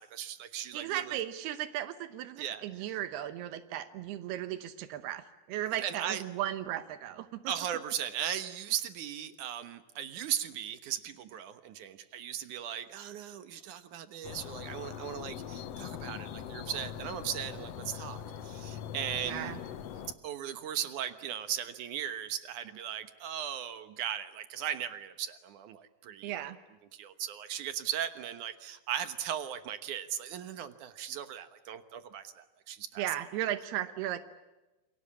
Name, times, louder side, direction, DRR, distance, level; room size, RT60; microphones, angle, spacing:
voice 1, 0.0-1.2 2.4-2.6 5.7-6.2 7.5-19.6 20.2-26.3 26.9-33.0, right 10 dB, 65° right, 10 dB, 2.3 m, -37 dB
voice 2, 0.7-7.5 19.2-19.6 26.2-26.6 33.0-34.2, right 12 dB, 85° right, 11 dB, 3.1 m, -36 dB
sound 1, 14.2-20.1, left 9 dB, 90° left, 1.4 m, -42 dB
28.5 x 22.0 x 8.6 m, 1.1 s
omnidirectional pair, 4.5 m